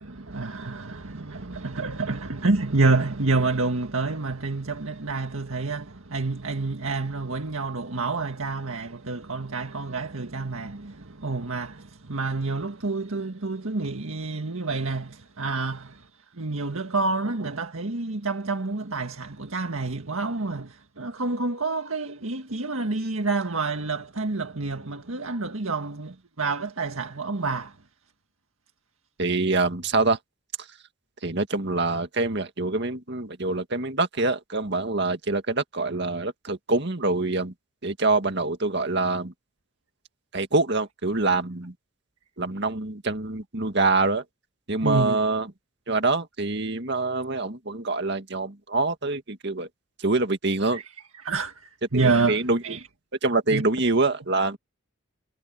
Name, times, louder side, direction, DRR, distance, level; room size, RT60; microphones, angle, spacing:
voice 1, 0.0-16.1 16.4-27.8 44.8-45.2 50.7-50.8 51.2-52.8 53.5-53.6, right 3 dB, 75° right, 1.7 m, -28 dB
voice 2, 29.2-30.2 31.2-37.5 37.8-39.3 40.3-41.7 42.4-44.2 44.7-45.5 45.9-49.7 50.0-50.8 51.9-52.8 53.2-54.6, right 3 dB, 55° right, 2.0 m, -25 dB
head